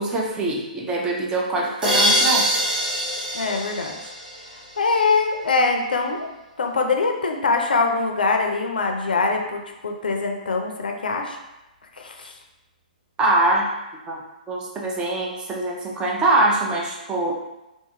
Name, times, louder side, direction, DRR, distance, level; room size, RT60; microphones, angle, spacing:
voice 1, 0.0-2.5 13.2-13.7 14.1-14.2 14.5-17.4, right 2 dB, 15° right, -2 dB, 0.5 m, -23 dB
sound 1, 1.8-4.7, equal, 85° right, 1.1 m, -23 dB
voice 2, 3.3-4.0 4.8-6.3 6.6-11.4 12.0-12.3, left 4 dB, 85° left, 3 dB, 0.4 m, -23 dB
2.4 x 2.4 x 2.8 m, 0.98 s
hypercardioid pair, 130°, 5 cm